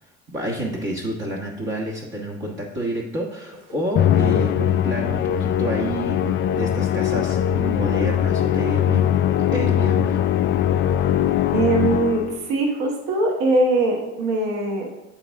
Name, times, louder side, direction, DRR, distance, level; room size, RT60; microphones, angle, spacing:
voice 1, 0.3-6.3 6.5-9.0 9.5-10.2, right 1 dB, 35° right, -4 dB, 1.4 m, -29 dB
Musical instrument, 4.0-12.5, left 10 dB, 40° left, 0.4 m, -21 dB
voice 2, 11.5-14.9, right 2 dB, 70° right, 2 dB, 1.2 m, -21 dB
7.5 x 4.1 x 3.6 m, 0.99 s
hypercardioid pair, 65°, 32 cm